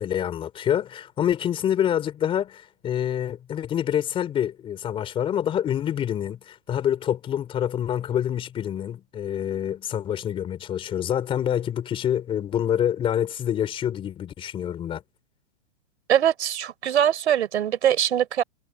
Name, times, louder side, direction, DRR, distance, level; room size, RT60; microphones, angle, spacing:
voice 1, 0.0-15.0, left 10 dB, 15° left, 4.5 m, -26 dB
voice 2, 16.1-18.4, right 10 dB, 70° right, 4.3 m, -22 dB
hypercardioid pair, 165°, 35 cm